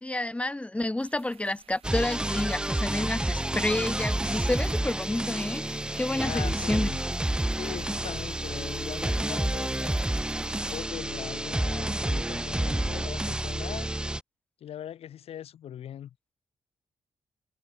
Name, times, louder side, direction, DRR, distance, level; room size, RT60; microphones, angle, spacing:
voice 1, 0.0-6.9, left 1 dB, 10° left, 1.8 m, -30 dB
sound 1, 1.0-10.8, right 9 dB, 70° right, 5.7 m, -56 dB
sound 2, 1.8-14.2, right 1 dB, 10° right, 1.1 m, -29 dB
voice 2, 6.2-7.0 7.6-10.1 10.7-13.9 14.6-16.1, left 10 dB, 80° left, 4.0 m, -40 dB
cardioid pair, 85°, 10 cm